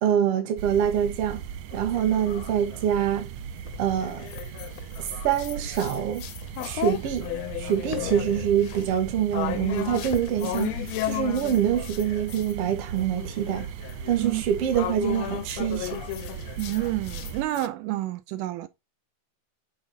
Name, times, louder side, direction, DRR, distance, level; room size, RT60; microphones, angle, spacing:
voice 1, 0.0-1.4 1.7-3.3 3.8-4.3 5.0-6.2 6.6-7.3 7.6-13.7 14.1-16.0, right 9 dB, 55° right, 1.8 m, -25 dB
sound 1, 0.6-17.4, right 8 dB, 75° right, 1.7 m, -38 dB
sound 2, 1.7-3.1 3.6-12.5 12.9-17.7, left 13 dB, 80° left, 1.5 m, -35 dB
voice 2, 16.6-18.7, right 16 dB, 90° right, 2.2 m, -29 dB
7.5 x 4.1 x 4.0 m
omnidirectional pair, 3.7 m